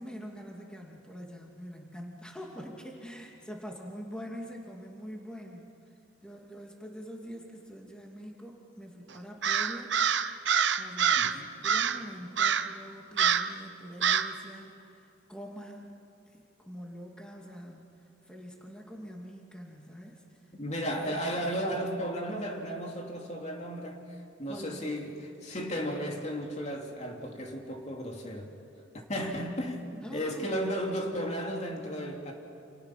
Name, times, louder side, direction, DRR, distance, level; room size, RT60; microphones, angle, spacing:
voice 1, 0.0-5.9 6.2-10.0 10.7-15.9 16.3-17.9 18.2-20.2 21.1-21.3 24.5-24.9 29.1-29.4 30.0-30.6, equal, 5° left, 0 dB, 2.6 m, -44 dB
Crow, 9.4-11.4 11.6-12.0 12.4-12.8 13.2-13.5 14.0-14.3, right 7 dB, 65° right, 0.9 m, -26 dB
voice 2, 11.2-11.5 20.6-28.5 28.9-32.3, equal, 35° left, 1 dB, 2.7 m, -34 dB
29.0 x 28.5 x 6.0 m, 2.7 s
head